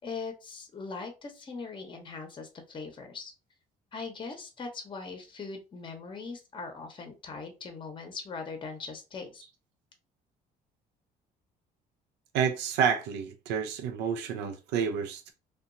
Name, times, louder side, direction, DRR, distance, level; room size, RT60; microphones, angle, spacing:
voice 1, 0.0-3.3 3.9-9.4, left 4 dB, 30° left, 0.7 m, -40 dB
voice 2, 12.3-15.3, right 7 dB, 85° right, 0.4 m, -29 dB
2.8 x 2.2 x 2.5 m
cardioid pair, 110°, 17 cm